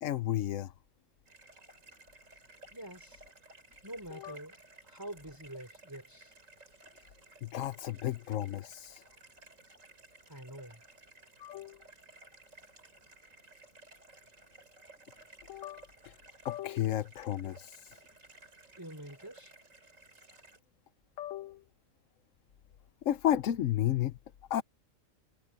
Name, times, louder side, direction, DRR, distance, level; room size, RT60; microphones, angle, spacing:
voice 1, 0.0-0.7 4.2-4.3 7.4-9.0 11.4-11.8 15.5-16.1 16.4-18.0 21.2-21.6 23.0-24.1 24.5-24.6, left 12 dB, 75° left, 1.1 m, -33 dB
sound 1, 1.3-20.6, right 2 dB, 75° right, 3.9 m, -57 dB
voice 2, 2.7-3.2 3.8-4.6 4.8-6.4 10.3-10.8 18.8-19.6, right 1 dB, 15° right, 4.0 m, -46 dB
omnidirectional pair, 1.3 m